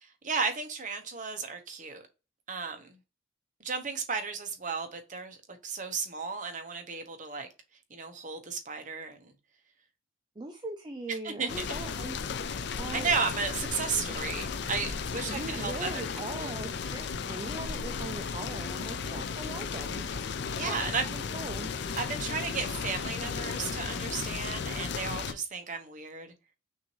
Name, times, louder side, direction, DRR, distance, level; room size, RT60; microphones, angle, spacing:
voice 1, 0.0-2.0 2.5-3.0 3.6-5.4 5.6-7.5 7.9-9.3 11.2-11.7 12.9-16.5 20.5-21.0 21.9-26.3, right 5 dB, 35° right, 0.9 m, -34 dB
voice 2, 10.4-12.2 12.8-13.1 15.2-20.0 20.7-21.7, right 2 dB, 20° right, 0.4 m, -40 dB
sound 1, 11.5-25.3, left 5 dB, 55° left, 0.4 m, -35 dB
6.0 x 2.6 x 3.0 m
head